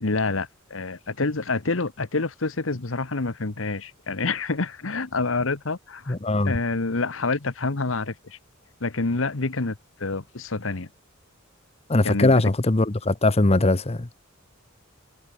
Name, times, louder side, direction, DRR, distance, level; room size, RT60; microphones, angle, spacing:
voice 1, 0.0-6.2 6.4-8.4 8.8-10.9 12.0-12.3, left 3 dB, 70° left, 1.3 m, -27 dB
voice 2, 6.1-6.6 11.9-14.1, left 2 dB, 30° left, 0.9 m, -20 dB
head